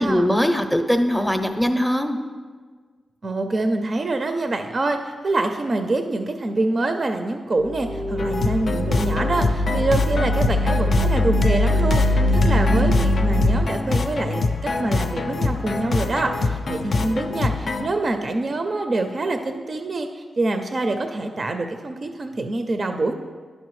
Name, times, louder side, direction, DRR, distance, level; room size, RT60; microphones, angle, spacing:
voice 1, 0.0-2.2, equal, ahead, 6 dB, 0.6 m, -21 dB
voice 2, 3.2-23.1, right 2 dB, 45° right, 6 dB, 0.4 m, -25 dB
sound 1, 7.6-13.6, left 1 dB, 85° right, 0.6 m, -21 dB
sound 2, 8.2-17.9, left 3 dB, 60° left, 0.5 m, -25 dB
11.0 x 5.4 x 3.1 m, 1.5 s
wide cardioid pair, 95°, 0 cm